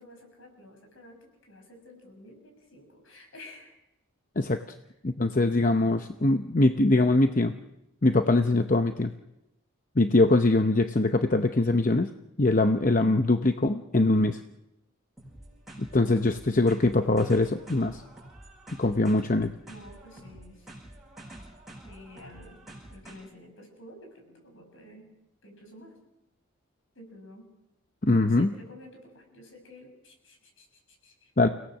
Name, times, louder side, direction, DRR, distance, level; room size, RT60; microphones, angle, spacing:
voice 1, 0.0-3.7 19.7-20.7 21.8-22.6 22.9-25.1 25.4-25.9 26.9-27.5 28.2-31.3, left 1 dB, 65° left, 3 dB, 6.4 m, -50 dB
voice 2, 5.0-7.5 8.0-9.1 10.0-12.1 12.4-14.4 15.8-18.0 18.8-19.5 28.0-28.5 31.4-31.5, left 2 dB, 40° left, 7 dB, 0.8 m, -22 dB
sound 1, 15.2-23.2, right 1 dB, ahead, 6.9 m, -48 dB
30.0 x 18.0 x 6.5 m, 0.92 s
head